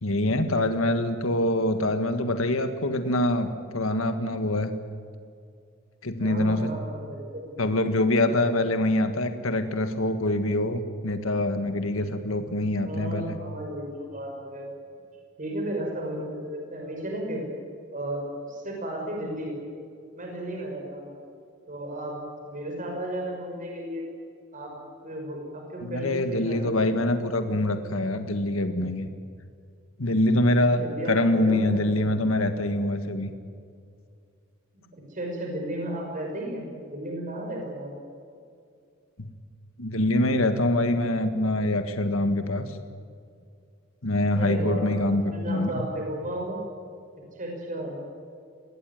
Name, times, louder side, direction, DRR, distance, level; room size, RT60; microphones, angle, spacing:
voice 1, 0.0-4.7 6.0-6.7 7.6-13.3 25.9-29.1 30.0-33.3 39.2-39.3 39.8-42.7 44.0-45.7, left 1 dB, 75° left, 8 dB, 1.7 m, -25 dB
voice 2, 6.2-7.7 12.8-14.7 15.4-17.4 17.9-19.6 20.1-21.1 21.7-22.1 22.4-24.1 24.5-24.7 25.0-26.9 30.7-32.2 34.7-37.9 44.3-46.6 47.4-48.0, right 1 dB, 40° right, 1 dB, 5.8 m, -34 dB
22.0 x 17.0 x 9.4 m, 2.3 s
head